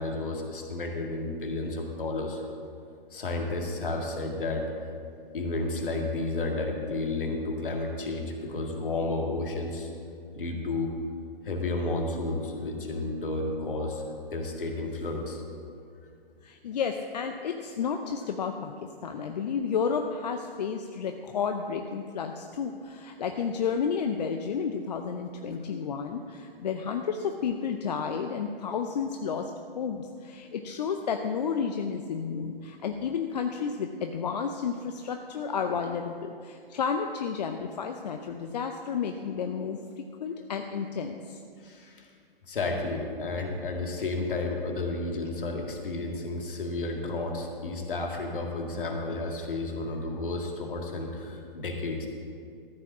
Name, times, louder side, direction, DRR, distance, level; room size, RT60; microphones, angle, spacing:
voice 1, 0.0-2.4 3.1-4.7 5.3-9.9 10.3-10.9 11.4-14.0 14.3-15.4 41.6-42.1 42.5-52.1, left 2 dB, 65° left, 2 dB, 2.0 m, -32 dB
voice 2, 16.4-41.4, left 6 dB, 45° left, 5 dB, 0.6 m, -31 dB
13.5 x 5.8 x 7.3 m, 2.3 s
figure-of-eight pair, 130°, 29 cm